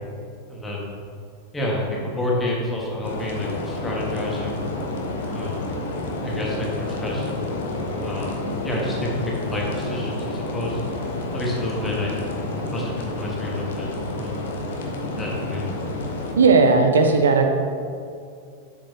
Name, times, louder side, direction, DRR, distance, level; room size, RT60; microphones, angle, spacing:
voice 1, 0.5-0.9 1.5-4.6 5.3-5.6 6.2-7.3 8.0-8.4 8.6-10.8 11.3-12.1 12.6-14.4 15.1-15.7, left 1 dB, 15° left, -3 dB, 1.7 m, -29 dB
sound 1, 3.0-16.3, left 2 dB, 60° left, 0.9 m, -30 dB
voice 2, 16.3-17.5, right 4 dB, 70° right, 5 dB, 0.6 m, -16 dB
7.6 x 7.1 x 2.9 m, 2.3 s
figure-of-eight pair, 90°, 0 cm